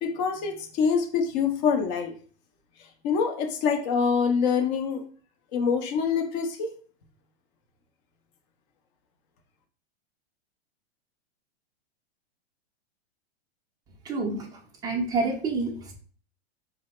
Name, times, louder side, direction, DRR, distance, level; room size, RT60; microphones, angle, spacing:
voice 1, 0.0-2.1 3.0-5.1 5.5-6.7, left 6 dB, 40° left, 4 dB, 0.7 m, -25 dB
voice 2, 14.0-14.5 14.8-16.0, right 3 dB, 10° right, 2 dB, 0.4 m, -28 dB
2.7 x 2.1 x 3.1 m, 0.44 s
hypercardioid pair, 120°, 33 cm